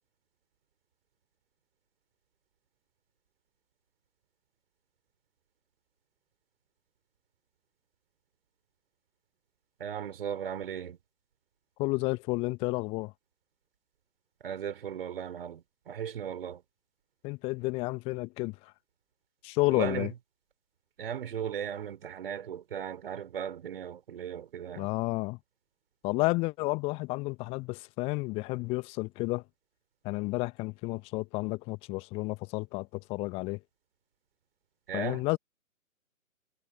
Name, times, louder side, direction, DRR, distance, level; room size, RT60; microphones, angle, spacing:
voice 1, 9.8-11.0 14.4-16.6 19.7-20.1 21.0-24.9 34.9-35.2, right 8 dB, 40° right, 5.0 m, -37 dB
voice 2, 11.8-13.1 17.2-18.7 19.4-20.1 24.8-25.4 26.0-29.4 30.0-33.6 34.9-35.4, left 24 dB, 15° left, 1.5 m, -31 dB
figure-of-eight pair, 135°, 43 cm